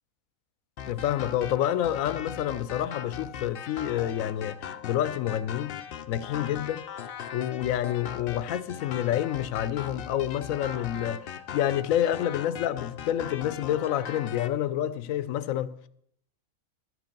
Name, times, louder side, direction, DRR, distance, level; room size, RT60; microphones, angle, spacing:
sound 1, 0.8-14.5, left 8 dB, 60° left, 0.6 m, -39 dB
voice 1, 0.9-5.8 6.1-6.9 7.3-15.8, left 11 dB, 80° left, 1.0 m, -28 dB
11.5 x 8.0 x 5.2 m
omnidirectional pair, 1.4 m